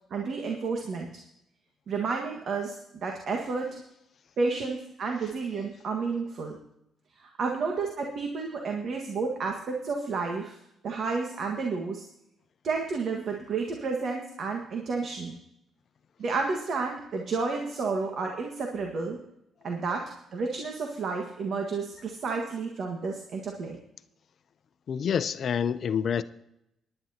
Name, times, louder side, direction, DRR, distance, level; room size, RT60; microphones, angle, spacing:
voice 1, 0.1-1.2 1.9-3.8 4.4-6.6 7.2-10.5 10.8-12.0 12.6-15.3 16.2-19.2 19.6-23.8, right 4 dB, 60° right, 2 dB, 1.6 m, -31 dB
voice 2, 24.9-26.2, left 7 dB, 55° left, 13 dB, 0.6 m, -27 dB
19.0 x 11.0 x 2.9 m, 0.82 s
cardioid pair, 90°, 0 cm